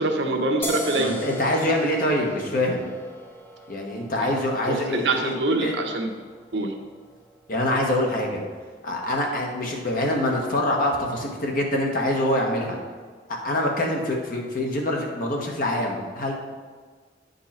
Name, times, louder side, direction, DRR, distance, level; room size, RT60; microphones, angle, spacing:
voice 1, 0.0-1.1 4.7-6.1 6.5-6.7, right 2 dB, 75° right, 3 dB, 1.0 m, -24 dB
sound 1, 0.6-7.9, equal, 15° left, 0.7 m, -39 dB
voice 2, 1.0-2.9 3.7-5.7 7.5-8.4 8.8-12.8 13.3-16.3, left 1 dB, 50° left, 0 dB, 1.4 m, -25 dB
9.4 x 5.5 x 4.4 m, 1.5 s
head